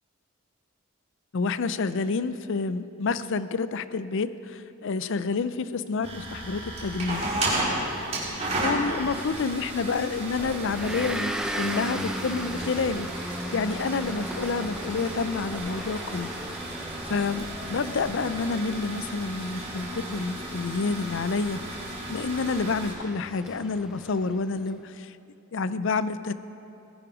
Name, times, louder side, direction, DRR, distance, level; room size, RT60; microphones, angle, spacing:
voice 1, 1.3-7.3 8.6-13.1 13.5-16.3 17.1-21.6 22.1-25.1 25.5-26.3, left 4 dB, 60° left, 14 dB, 0.5 m, -29 dB
sound 1, 6.0-22.9, right 1 dB, 30° right, 3.4 m, -34 dB
Motor vehicle (road) / Engine, 10.4-24.6, equal, 5° right, 0.6 m, -37 dB
19.5 x 11.0 x 5.0 m, 2.8 s
head